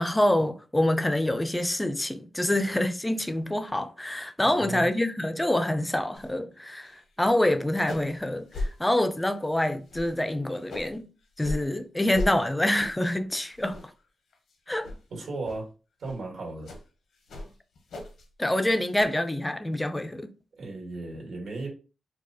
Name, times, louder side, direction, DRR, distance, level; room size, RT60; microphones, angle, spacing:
voice 1, 0.0-6.9 7.2-11.1 11.4-13.8 14.7-14.9 18.4-20.3, left 1 dB, 10° left, 0.3 m, -26 dB
voice 2, 4.4-4.9 15.1-15.7 16.0-16.7 20.6-21.7, right 2 dB, 75° right, 1.8 m, -35 dB
sound 1, 6.1-6.3 6.6-7.1 7.3-7.4 7.7-8.2 8.5-8.7 9.2-9.5 9.9-11.0 11.4-11.6 12.1-12.3 12.7-13.1 13.5-14.0 14.3-14.5 14.8-15.0 15.4-15.6 16.0-16.2 16.6-16.8 17.3-18.3 18.6-19.0, left 2 dB, 85° left, 0.8 m, -37 dB
4.6 x 2.2 x 2.8 m
wide cardioid pair, 175°, 0 cm